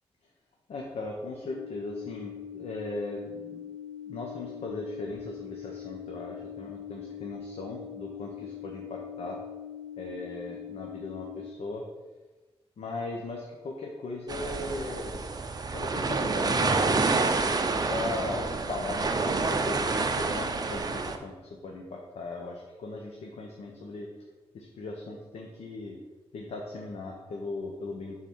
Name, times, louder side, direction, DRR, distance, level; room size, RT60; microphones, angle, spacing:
voice 1, 0.7-3.7 4.1-9.4 10.0-11.8 12.8-15.2 15.7-21.3 21.6-24.1 24.5-26.0 26.3-28.2, left 2 dB, 75° left, 0 dB, 1.1 m, -38 dB
sound 1, 1.4-11.4, left 9 dB, 15° left, 2.4 m, -42 dB
sound 2, 14.3-21.2, right 3 dB, 40° right, 0.6 m, -28 dB
7.7 x 4.1 x 5.6 m, 1.2 s
cardioid pair, 95°, 11 cm